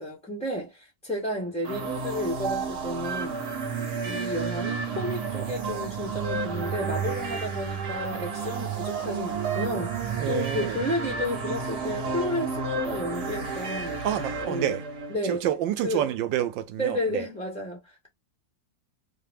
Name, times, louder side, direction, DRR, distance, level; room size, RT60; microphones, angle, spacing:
voice 1, 0.0-3.4 4.0-14.0 14.5-14.8 15.1-15.4 15.8-16.0 16.8-18.1, left 1 dB, 5° left, 0.6 m, -32 dB
sound 1, 1.6-15.2, right 5 dB, 60° right, 1.7 m, -31 dB
voice 2, 10.2-10.8 14.0-14.8 15.2-17.3, right 11 dB, 80° right, 1.4 m, -28 dB
4.6 x 2.1 x 3.4 m
omnidirectional pair, 2.0 m